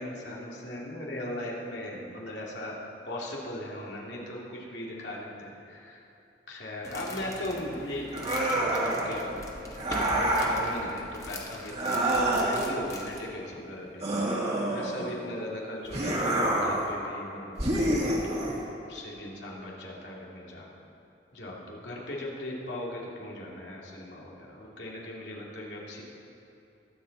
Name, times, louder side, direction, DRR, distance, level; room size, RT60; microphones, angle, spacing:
voice 1, 0.0-2.8 3.1-6.0 6.5-9.4 9.8-14.3 14.7-18.4 18.9-20.7 21.3-26.0, left 1 dB, 85° left, -3 dB, 2.5 m, -38 dB
sound 1, 6.8-13.3, left 1 dB, 20° left, 1.4 m, -42 dB
sound 2, 8.1-9.1 9.8-10.6 11.7-12.7 14.0-15.1 15.9-16.9 17.6-18.6, right 1 dB, 40° right, 2.1 m, -27 dB
22.0 x 7.7 x 4.1 m, 2.8 s
head